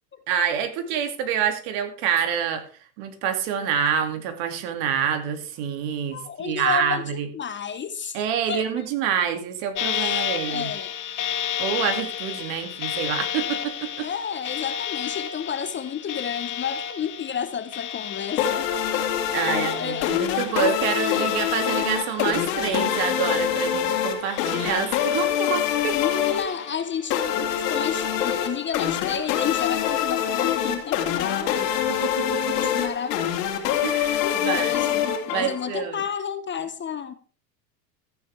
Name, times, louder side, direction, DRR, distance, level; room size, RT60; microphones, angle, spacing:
voice 1, 0.3-2.6 3.0-7.3 8.1-10.7 11.6-14.1 19.3-26.0 32.0-32.7 33.8-34.8 35.3-36.0, right 8 dB, 60° right, 7 dB, 2.5 m, -27 dB
voice 2, 6.1-8.2 8.5-8.7 10.0-10.1 10.5-10.9 14.0-18.7 19.5-20.2 21.2-21.3 21.7-21.9 25.9-31.8 32.6-33.2 34.2-37.1, left 7 dB, 25° left, 10 dB, 1.0 m, -31 dB
sound 1, 9.8-22.3 22.6-23.8 24.3-25.5 25.9-27.0 27.5-28.1, left 9 dB, 40° left, 1.6 m, -33 dB
sound 2, 18.4-35.8, left 10 dB, 65° left, 2.6 m, -25 dB
14.0 x 9.2 x 3.4 m, 0.37 s
hypercardioid pair, 105°, 50 cm